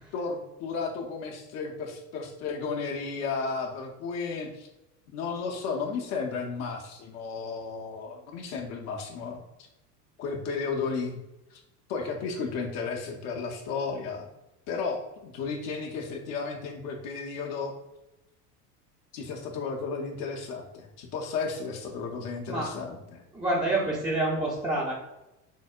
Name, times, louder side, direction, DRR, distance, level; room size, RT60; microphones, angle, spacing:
voice 1, 0.1-4.7 5.1-9.4 10.2-11.2 11.5-11.6 11.9-14.3 14.7-17.7 19.1-23.2, left 4 dB, 35° left, 1 dB, 0.5 m, -33 dB
voice 2, 23.3-24.9, right 2 dB, 10° right, -6 dB, 0.5 m, -27 dB
4.4 x 2.0 x 2.4 m, 0.93 s
figure-of-eight pair, 75°, 46 cm